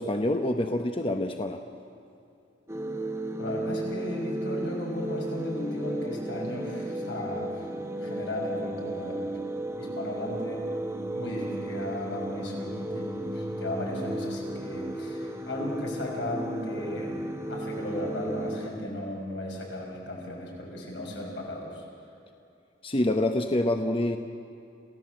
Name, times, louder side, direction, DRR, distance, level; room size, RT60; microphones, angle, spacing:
voice 1, 0.0-1.6 22.8-24.2, left 1 dB, 30° left, 5 dB, 0.9 m, -26 dB
sound 1, 2.7-18.7, right 1 dB, 15° right, 1.0 m, -34 dB
voice 2, 3.4-7.7 8.0-9.4 9.8-10.6 11.1-17.2 17.5-21.8, left 1 dB, 80° left, -1 dB, 6.2 m, -36 dB
27.5 x 16.5 x 7.8 m, 2.6 s
head